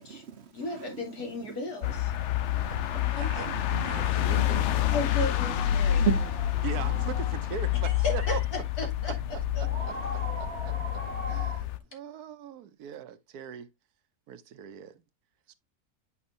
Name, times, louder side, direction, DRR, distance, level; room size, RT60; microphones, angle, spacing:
voice 1, 0.0-5.3 5.7-7.2, right 7 dB, 50° right, 0.9 m, -38 dB
voice 2, 0.5-2.1 3.1-3.4 4.9-6.0 7.8-9.1 9.5-9.6, left 2 dB, 80° left, 3.2 m, -35 dB
sound 1, 1.8-11.8, left 12 dB, 65° left, 0.8 m, -28 dB
voice 3, 3.1-3.5 3.8-4.6 5.8-5.9 6.6-8.4 9.1-9.2 9.6-13.7 14.3-15.0 15.5-15.6, right 9 dB, 85° right, 1.3 m, -40 dB
sound 2, 3.7-11.6, equal, 45° left, 3.4 m, -42 dB
8.4 x 6.0 x 2.6 m
omnidirectional pair, 1.6 m